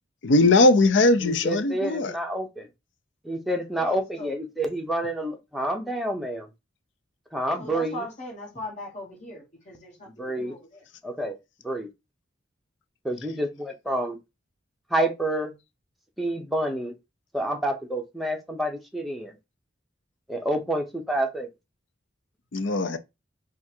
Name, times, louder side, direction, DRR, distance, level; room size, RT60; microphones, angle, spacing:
voice 1, 0.2-2.1 22.5-23.0, left 2 dB, 70° left, 0.5 m, -19 dB
voice 2, 1.2-2.7 3.2-6.5 7.3-8.0 10.2-10.6 11.0-11.4 11.6-11.9 13.0-14.2 14.9-15.5 16.2-16.9 17.3-19.3 20.3-21.5, right 1 dB, ahead, 0.7 m, -28 dB
voice 3, 3.8-4.3 7.6-10.8, left 1 dB, 35° left, 1.7 m, -39 dB
3.5 x 2.5 x 4.4 m
head